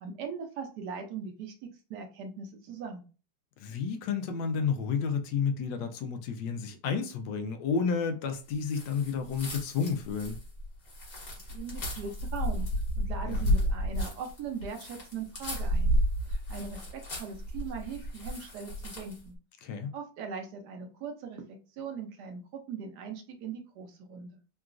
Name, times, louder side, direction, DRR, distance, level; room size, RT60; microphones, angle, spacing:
voice 1, 0.0-3.0 11.5-12.7 13.0-16.0 16.3-19.3 19.9-21.4 21.7-24.3, right 5 dB, 70° right, 1.1 m, -40 dB
voice 2, 3.6-10.4 13.2-13.5 19.6-19.9, left 6 dB, 80° left, 1.2 m, -31 dB
sound 1, 8.6-19.3, equal, 50° left, 1.6 m, -32 dB
3.8 x 2.3 x 2.4 m
omnidirectional pair, 2.1 m